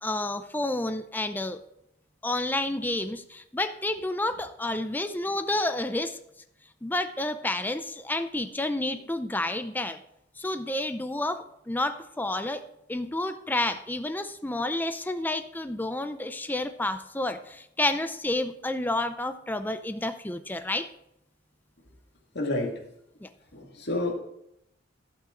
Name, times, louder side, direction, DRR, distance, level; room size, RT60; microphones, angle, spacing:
voice 1, 0.0-1.6 2.2-6.2 6.8-10.0 10.4-20.9 23.2-23.3, left 2 dB, 10° left, 9 dB, 0.5 m, -30 dB
voice 2, 22.3-22.7 23.5-24.1, left 2 dB, 60° left, 1 dB, 2.1 m, -29 dB
11.5 x 8.6 x 3.8 m, 0.77 s
head